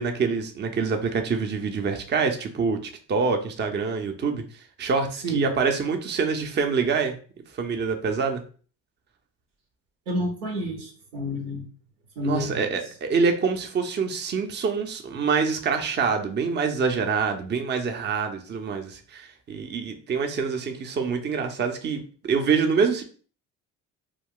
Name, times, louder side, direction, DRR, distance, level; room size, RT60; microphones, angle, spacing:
voice 1, 0.0-4.4 4.8-7.1 7.6-8.4 12.2-23.0, right 5 dB, 30° right, 5 dB, 0.6 m, -26 dB
voice 2, 10.1-11.6 12.2-12.7, equal, 90° right, 1 dB, 0.9 m, -29 dB
2.3 x 2.3 x 3.6 m, 0.40 s
hypercardioid pair, 65°, 36 cm